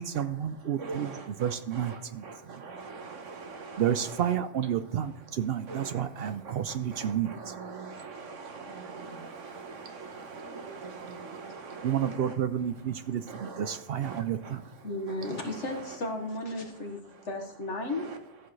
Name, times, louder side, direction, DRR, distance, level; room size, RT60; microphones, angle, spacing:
voice 1, 0.0-2.2 3.8-7.4 11.8-14.6, right 9 dB, 65° right, 0.7 m, -30 dB
voice 2, 0.8-4.1 5.7-12.4 13.3-14.5, right 4 dB, 85° right, 1.5 m, -42 dB
voice 3, 14.8-18.1, left 2 dB, 75° left, 1.9 m, -34 dB
14.5 x 8.3 x 3.2 m
omnidirectional pair, 1.2 m